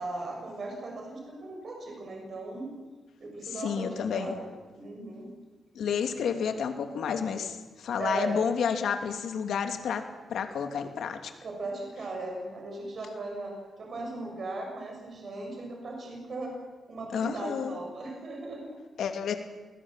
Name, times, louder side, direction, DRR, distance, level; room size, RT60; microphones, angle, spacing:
voice 1, 0.0-2.7 3.2-5.3 8.0-8.4 11.4-16.5 16.9-18.8, right 2 dB, 45° right, 1 dB, 6.5 m, -37 dB
voice 2, 3.6-4.3 5.7-10.0 10.3-11.3 17.1-17.8 19.0-19.3, left 7 dB, 75° left, 6 dB, 2.7 m, -30 dB
27.5 x 19.5 x 7.5 m, 1.3 s
wide cardioid pair, 155°, 0 cm